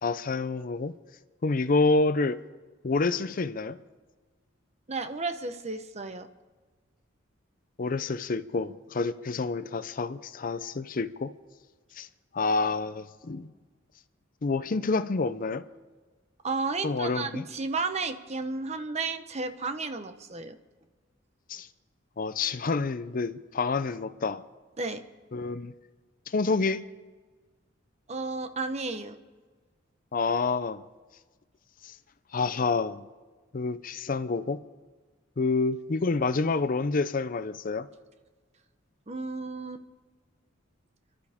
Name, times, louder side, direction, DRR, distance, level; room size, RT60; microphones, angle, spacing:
voice 1, 0.0-0.9 1.4-2.4 2.8-3.8 7.8-11.3 11.9-12.1 12.3-13.5 14.4-15.6 16.8-17.4 21.5-21.7 22.2-24.4 25.3-25.7 26.3-26.8 30.1-30.8 31.8-31.9 32.3-33.1 33.5-34.6 35.4-37.9, left 3 dB, 45° left, 0.5 m, -28 dB
voice 2, 4.9-6.3 16.4-20.6 24.8-25.0 28.1-29.2 39.1-39.8, right 3 dB, 35° right, 0.9 m, -33 dB
30.0 x 12.0 x 3.6 m
head